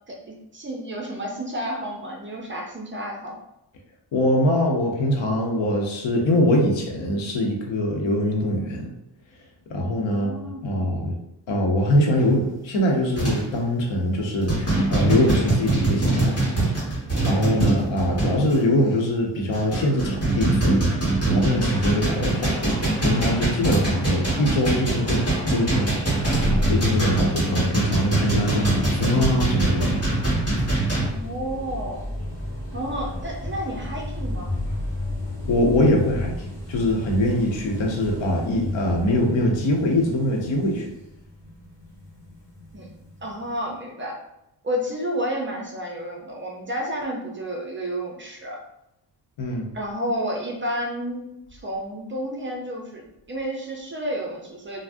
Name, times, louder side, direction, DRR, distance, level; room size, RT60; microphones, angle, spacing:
voice 1, 0.1-3.4 10.1-11.0 31.1-32.1 32.7-34.5 42.7-42.9 43.2-44.2 44.6-48.6 49.7-54.8, equal, 30° right, -1 dB, 0.4 m, -31 dB
voice 2, 4.1-8.9 9.7-10.3 10.6-11.2 11.5-16.5 17.2-25.9 26.7-30.0 35.4-36.3 36.7-40.9 49.4-49.7, left 1 dB, 80° left, 0 dB, 0.7 m, -23 dB
sound 1, 12.2-12.4 13.1-13.6 14.0-14.2 14.5-18.6 19.2-31.1, right 2 dB, 35° left, 1.2 m, -23 dB
sound 2, 26.2-43.5, left 1 dB, 5° left, 1.3 m, -33 dB
2.5 x 2.0 x 3.4 m, 0.85 s
wide cardioid pair, 165°, 45 cm